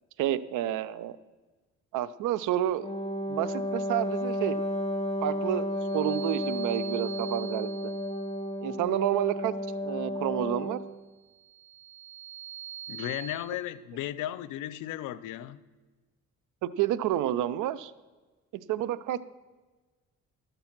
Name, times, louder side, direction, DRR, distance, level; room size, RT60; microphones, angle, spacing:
voice 1, 0.2-1.2 1.9-2.9 3.3-4.6 5.2-7.7 8.6-9.5 9.8-10.8 16.6-17.9 18.7-19.2, right 12 dB, 85° right, 0.5 m, -29 dB
Wind instrument woodwind instrument, 2.8-10.9, left 1 dB, 20° left, 1.3 m, -32 dB
sound 1, 5.7-8.3 11.3-13.4, right 10 dB, 40° right, 3.1 m, -43 dB
voice 2, 12.9-15.6, left 13 dB, 90° left, 0.5 m, -35 dB
12.5 x 6.8 x 5.9 m
cardioid pair, 90°, 30 cm